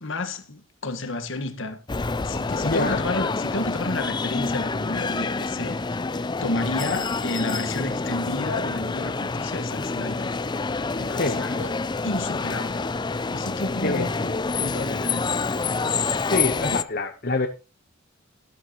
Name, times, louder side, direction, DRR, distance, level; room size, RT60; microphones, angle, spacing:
voice 1, 0.0-1.8 2.2-10.3 10.9-12.9 13.3-15.4, left 2 dB, 60° left, 1.5 m, -31 dB
sound 1, 1.9-16.8, left 4 dB, 20° left, 0.5 m, -27 dB
voice 2, 2.6-3.0 11.2-11.4 13.8-14.1 16.3-17.5, left 2 dB, 45° left, 1.1 m, -25 dB
13.0 x 11.5 x 3.0 m
head